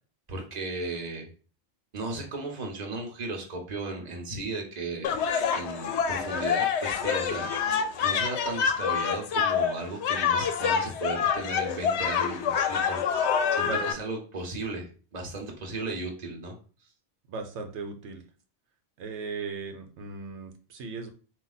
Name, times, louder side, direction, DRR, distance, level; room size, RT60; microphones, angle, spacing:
voice 1, 0.3-1.3 1.9-5.2 5.5-13.0 13.5-16.6, right 3 dB, 40° right, 2 dB, 1.0 m, -36 dB
sound 1, 5.0-13.9, left 7 dB, 75° left, 0.8 m, -27 dB
voice 2, 17.3-18.2 19.0-21.1, right 4 dB, 85° right, 5 dB, 1.0 m, -37 dB
4.0 x 2.5 x 4.0 m, 0.38 s
omnidirectional pair, 1.1 m